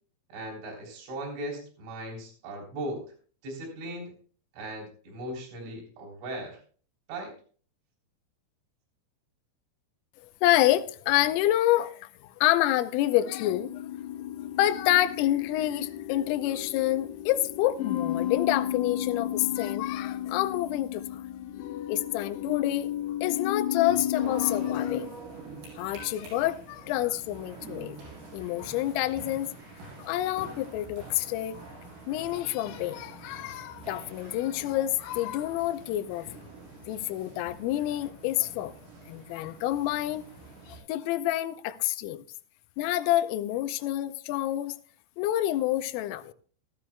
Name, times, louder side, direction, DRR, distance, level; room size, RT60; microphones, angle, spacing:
voice 1, 0.3-3.0 3.4-4.1 4.5-6.6 7.1-7.3, right 1 dB, 70° right, 5.9 m, -38 dB
voice 2, 10.4-13.8 14.6-21.2 21.9-22.9 23.2-25.1 25.8-28.0 28.3-29.5 30.0-31.6 32.1-36.4 36.9-38.7 39.1-40.2 40.7-42.2 42.8-44.8 45.2-46.3, left 14 dB, 85° left, 3.3 m, -28 dB
sound 1, 13.2-25.0, left 11 dB, 70° left, 2.8 m, -33 dB
sound 2, 24.2-40.8, right 3 dB, 85° right, 9.6 m, -46 dB
16.0 x 14.5 x 2.2 m
omnidirectional pair, 5.7 m